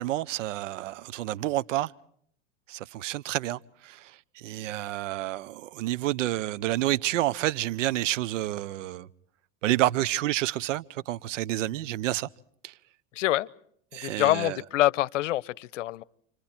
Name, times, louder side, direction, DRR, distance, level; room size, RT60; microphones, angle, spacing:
voice 1, 0.0-1.9 2.7-9.1 9.6-12.3 12.6-12.7 13.9-14.6, right 15 dB, 80° right, 0.9 m, -29 dB
voice 2, 13.2-13.5 14.0-16.0, left 15 dB, 85° left, 0.8 m, -25 dB
30.0 x 25.5 x 4.4 m
hypercardioid pair, 105°, 37 cm